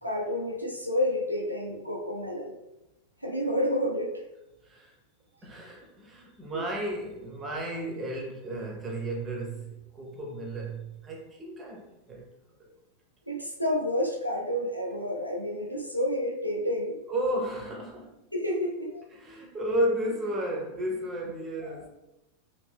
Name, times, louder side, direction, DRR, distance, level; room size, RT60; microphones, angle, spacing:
voice 1, 0.0-2.5 3.2-4.1 6.5-6.6 13.3-17.0 18.3-19.0 21.6-21.8, left 1 dB, 90° right, 0 dB, 0.5 m, -30 dB
voice 2, 4.6-4.9 5.4-12.2 17.1-18.2 19.1-21.9, right 1 dB, 20° right, 0 dB, 0.9 m, -33 dB
2.9 x 2.9 x 3.3 m, 0.95 s
figure-of-eight pair, 90°, 0 cm